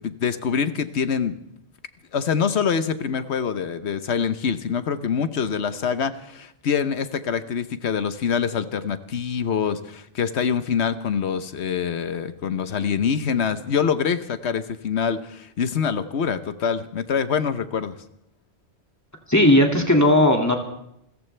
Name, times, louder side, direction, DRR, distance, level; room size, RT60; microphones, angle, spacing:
voice 1, 0.0-1.4 2.1-18.0, left 7 dB, 75° left, 12 dB, 1.2 m, -25 dB
voice 2, 19.3-20.6, left 1 dB, 15° left, 2 dB, 2.2 m, -16 dB
28.0 x 14.5 x 3.3 m, 0.80 s
omnidirectional pair, 1.1 m